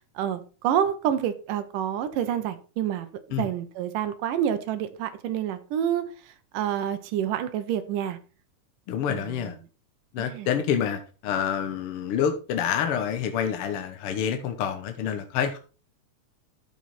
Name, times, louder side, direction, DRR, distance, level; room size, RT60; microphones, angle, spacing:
voice 1, 0.2-3.1 3.4-6.0 6.5-8.2 9.1-9.3 10.2-10.5, right 9 dB, 85° right, 10 dB, 2.5 m, -28 dB
voice 2, 8.9-9.5 10.1-15.6, left 8 dB, 65° left, 6 dB, 1.4 m, -27 dB
12.5 x 5.5 x 4.2 m, 0.35 s
omnidirectional pair, 3.7 m